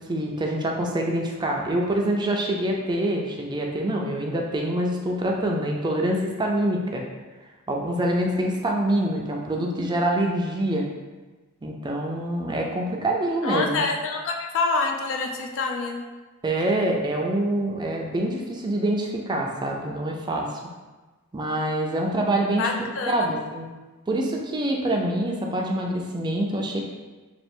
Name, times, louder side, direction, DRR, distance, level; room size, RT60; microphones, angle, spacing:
voice 1, 0.1-7.0 7.7-10.9 11.6-13.9 16.4-20.5 21.3-23.7 24.1-26.8, right 1 dB, 20° right, 0 dB, 0.4 m, -25 dB
voice 2, 13.4-16.0 22.6-23.3, left 3 dB, 60° left, 3 dB, 0.4 m, -26 dB
3.2 x 2.4 x 4.4 m, 1.2 s
head